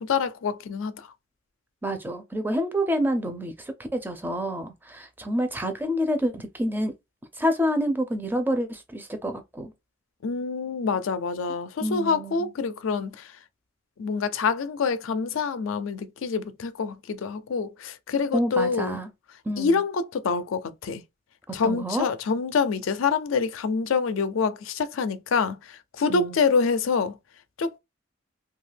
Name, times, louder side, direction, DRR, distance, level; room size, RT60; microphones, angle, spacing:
voice 1, 0.1-0.9 10.2-13.3 14.0-19.0 19.6-21.0 21.5-27.1 27.6-27.8, left 5 dB, 75° left, 0.4 m, -26 dB
voice 2, 1.8-6.9 7.4-9.7 11.8-12.5 18.3-19.1 19.5-19.8 21.5-22.1 26.1-26.4, equal, 10° right, 0.4 m, -28 dB
2.7 x 2.3 x 3.3 m
head